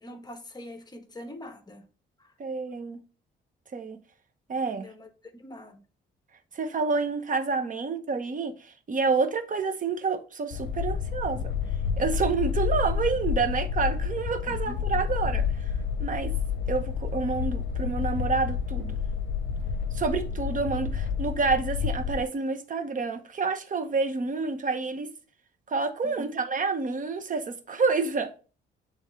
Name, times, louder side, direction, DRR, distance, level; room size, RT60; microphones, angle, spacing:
voice 1, 0.0-1.8 2.2-2.3 4.8-5.8 14.5-14.8 26.0-26.3, equal, 20° left, 1.1 m, -43 dB
voice 2, 2.4-3.0 3.7-4.0 4.5-4.9 6.5-11.5 12.0-15.7 16.0-16.3 16.7-19.0 19.9-25.1 25.7-28.5, right 4 dB, 40° right, 0.9 m, -28 dB
sound 1, 10.5-22.2, left 6 dB, 65° left, 0.7 m, -29 dB
8.2 x 3.6 x 3.2 m
cardioid pair, 90°, 20 cm